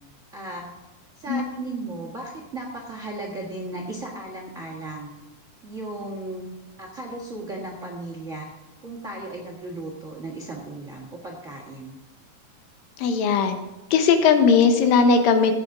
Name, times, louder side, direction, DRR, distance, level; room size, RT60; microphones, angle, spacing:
voice 1, 0.3-0.6 1.2-5.1 5.6-6.4 6.8-8.5 8.8-12.0, right 2 dB, 40° right, -1 dB, 1.0 m, -35 dB
voice 2, 13.0-13.6 13.9-15.5, left 5 dB, 85° left, 7 dB, 2.7 m, -18 dB
16.0 x 8.9 x 3.7 m, 1.1 s
omnidirectional pair, 4.0 m